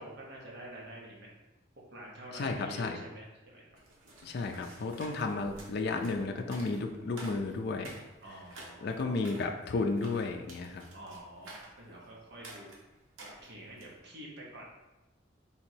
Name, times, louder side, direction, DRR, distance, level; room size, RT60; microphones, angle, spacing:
voice 1, 0.0-1.3 1.9-3.6 5.1-5.3 8.2-9.4 10.9-12.7 13.2-14.7, right 1 dB, 55° right, -2 dB, 1.0 m, -48 dB
voice 2, 2.3-3.0 4.2-7.9 8.8-10.8, left 3 dB, 55° left, 4 dB, 0.4 m, -33 dB
sound 1, 3.8-14.0, right 2 dB, 85° right, 1.0 m, -52 dB
3.5 x 2.9 x 4.4 m, 1.0 s
head